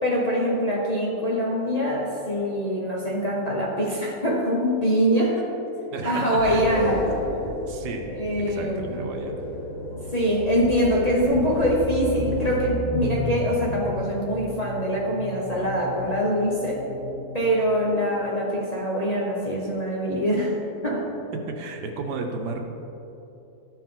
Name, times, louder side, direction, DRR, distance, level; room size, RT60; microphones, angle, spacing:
voice 1, 0.0-5.5 6.0-7.0 8.1-9.0 10.1-16.8 17.3-20.6 20.8-21.1, equal, 30° left, -5 dB, 0.8 m, -24 dB
voice 2, 5.9-6.6 7.7-8.0 8.5-9.4 21.5-22.6, right 3 dB, 80° right, 3 dB, 1.4 m, -33 dB
sound 1, 6.4-12.6, left 1 dB, 80° left, 1.7 m, -32 dB
sound 2, 12.2-18.6, left 2 dB, 20° right, 0.4 m, -35 dB
13.5 x 4.6 x 3.7 m, 3.0 s
omnidirectional pair, 1.8 m